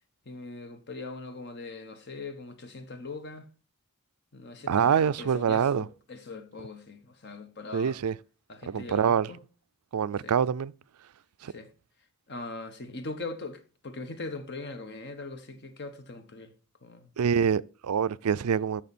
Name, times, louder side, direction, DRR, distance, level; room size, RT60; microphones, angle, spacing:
voice 1, 0.3-3.5 4.3-8.0 8.5-9.4 10.2-10.3 11.5-11.7 12.3-16.5 16.8-17.1, left 3 dB, 50° left, 1.3 m, -41 dB
voice 2, 4.7-5.8 7.7-8.2 8.7-9.3 9.9-10.7 11.4-11.5 17.2-18.8, right 7 dB, 90° right, 0.4 m, -25 dB
14.0 x 5.9 x 4.3 m
head